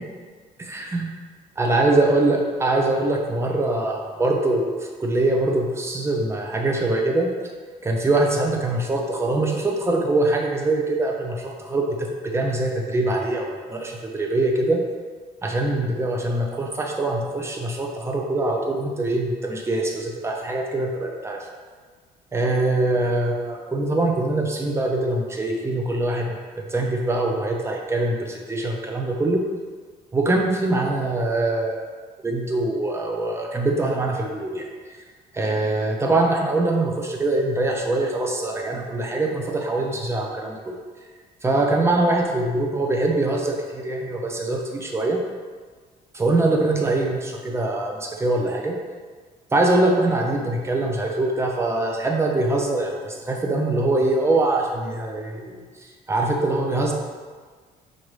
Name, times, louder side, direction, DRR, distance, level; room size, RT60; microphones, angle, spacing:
voice 1, 0.6-1.1 1.6-7.3 7.8-14.8 15.4-21.5 22.3-29.5 30.1-31.8 32.2-34.7 35.3-40.7 41.4-45.2 46.1-48.8 49.5-55.6 56.1-56.9, right 2 dB, 15° right, 1 dB, 0.6 m, -23 dB
5.9 x 2.5 x 3.2 m, 1.5 s
cardioid pair, 110°, 17 cm